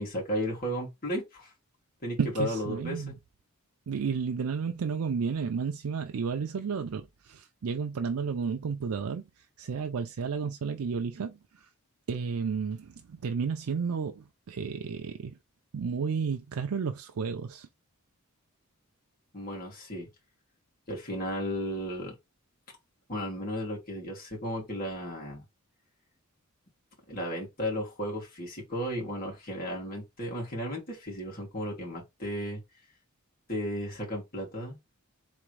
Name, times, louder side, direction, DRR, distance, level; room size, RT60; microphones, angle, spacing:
voice 1, 0.0-1.5 2.0-3.1 19.3-20.1 20.9-22.1 23.1-25.4 27.1-32.6 33.5-34.8, equal, 45° left, 2.6 m, -34 dB
voice 2, 2.2-3.1 3.9-11.7 12.1-15.4 15.7-17.7, right 5 dB, 85° right, 0.5 m, -32 dB
3.8 x 3.6 x 3.3 m
head